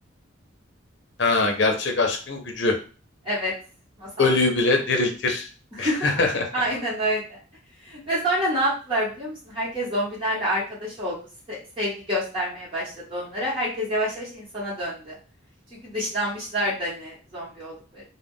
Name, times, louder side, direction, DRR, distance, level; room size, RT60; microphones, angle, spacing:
voice 1, 1.2-2.8 4.2-5.5 5.8-6.5, left 3 dB, 60° left, 3 dB, 0.6 m, -22 dB
voice 2, 4.0-4.3 5.7-6.2 6.5-7.4 7.8-11.2 11.5-15.2 15.8-18.0, equal, 25° right, -7 dB, 1.0 m, -28 dB
2.4 x 2.1 x 3.5 m, 0.36 s
head